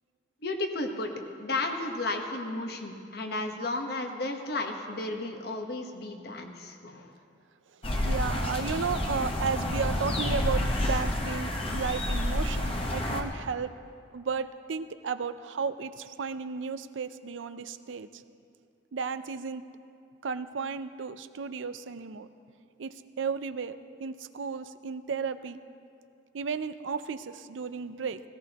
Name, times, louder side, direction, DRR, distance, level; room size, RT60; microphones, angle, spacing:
voice 1, 0.4-1.1 1.4-7.1, left 2 dB, 55° left, 3 dB, 1.2 m, -33 dB
sound 1, 7.8-13.2, left 1 dB, 30° left, 1.0 m, -29 dB
voice 2, 8.0-13.7 14.1-18.2 18.9-19.6 20.2-22.3 22.8-25.6 26.3-28.2, right 5 dB, 85° right, 12 dB, 0.5 m, -34 dB
17.0 x 17.0 x 3.0 m, 2.5 s
head